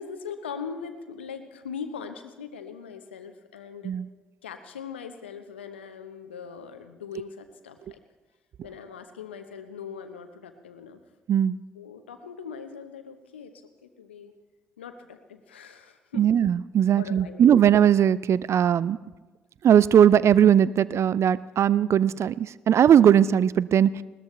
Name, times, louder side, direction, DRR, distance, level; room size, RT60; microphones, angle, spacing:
voice 1, 0.0-3.9 4.4-8.0 8.6-11.0 11.7-13.5 13.8-14.3 14.8-16.2 17.0-17.5, left 6 dB, 90° left, 8 dB, 0.9 m, -40 dB
voice 2, 16.1-19.0 19.6-24.0, right 9 dB, 50° right, 20 dB, 0.4 m, -19 dB
20.5 x 18.0 x 3.2 m, 1.2 s
hypercardioid pair, 45°, 6 cm